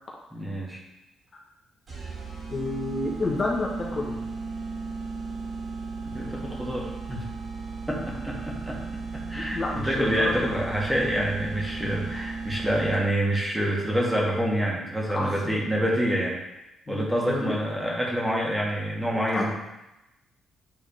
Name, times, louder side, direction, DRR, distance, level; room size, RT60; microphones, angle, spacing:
voice 1, 0.3-0.8 6.0-7.3 7.9-9.6 9.8-16.4 16.9-19.5, equal, 5° right, -3 dB, 1.8 m, -27 dB
sound 1, 1.9-13.3, right 4 dB, 45° right, 2.2 m, -36 dB
voice 2, 2.5-4.2 9.3-10.6 15.1-15.6 16.9-17.6 19.3-19.5, left 2 dB, 45° left, -2 dB, 1.2 m, -30 dB
8.8 x 3.8 x 3.4 m, 0.94 s
cardioid pair, 90°, 0 cm